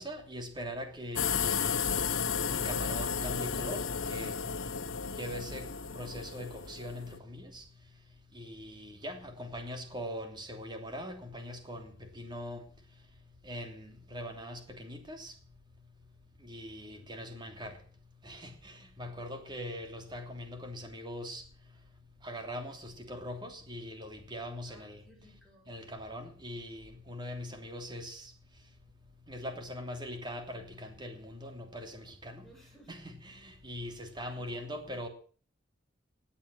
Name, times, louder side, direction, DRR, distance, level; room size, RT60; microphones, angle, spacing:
voice 1, 0.0-1.9 2.5-4.3 5.2-5.6 5.9-7.6 8.3-12.6 13.4-15.3 16.4-17.7 18.2-21.4 22.2-25.0 25.7-28.3 29.3-32.4 32.9-35.1, equal, 25° right, 3.0 m, -41 dB
sound 1, 1.2-7.2, left 6 dB, 85° left, 1.3 m, -33 dB
voice 2, 16.7-17.1 24.7-25.7 32.4-32.9 34.2-34.7, equal, ahead, 6.9 m, -60 dB
18.5 x 8.6 x 7.6 m
head